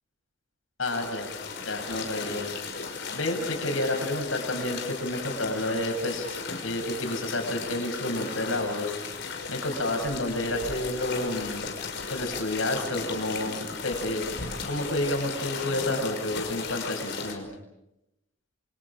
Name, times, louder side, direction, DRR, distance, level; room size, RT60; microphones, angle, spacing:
voice 1, 0.8-1.3 1.6-2.5 3.1-6.3 6.6-8.9 9.5-11.7 12.1-14.3 14.6-17.5, left 1 dB, 85° left, 3 dB, 7.5 m, -30 dB
sound 1, 0.8-17.3, left 4 dB, 60° left, 5.9 m, -35 dB
28.5 x 27.5 x 5.1 m, 0.87 s
head